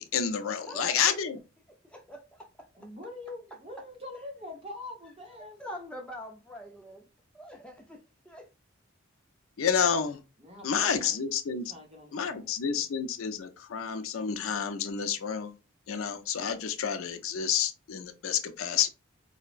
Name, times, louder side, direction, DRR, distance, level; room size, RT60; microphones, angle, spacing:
voice 1, 0.0-1.4 9.6-10.2 10.6-11.7 12.1-15.5 15.9-18.9, left 7 dB, 80° left, 0.5 m, -29 dB
voice 2, 1.8-2.5 5.6-7.1 7.3-8.5, equal, 5° left, 0.4 m, -44 dB
voice 3, 2.8-5.9 10.4-11.2 11.7-12.8, left 2 dB, 30° right, 0.9 m, -44 dB
4.5 x 2.1 x 2.4 m
head